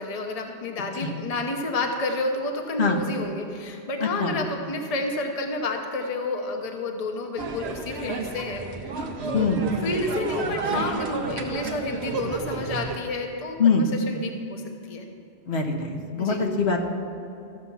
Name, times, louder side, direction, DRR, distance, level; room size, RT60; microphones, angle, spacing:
voice 1, 0.0-8.8 9.2-9.6 9.8-15.1 16.2-16.4, left 2 dB, 35° left, 3 dB, 0.9 m, -30 dB
voice 2, 4.0-4.4 9.3-9.6 13.6-13.9 15.5-16.8, left 4 dB, 65° left, 2 dB, 1.4 m, -23 dB
sound 1, 7.4-13.0, right 4 dB, 65° right, 1.2 m, -31 dB
14.5 x 7.1 x 5.6 m, 2.7 s
omnidirectional pair, 1.2 m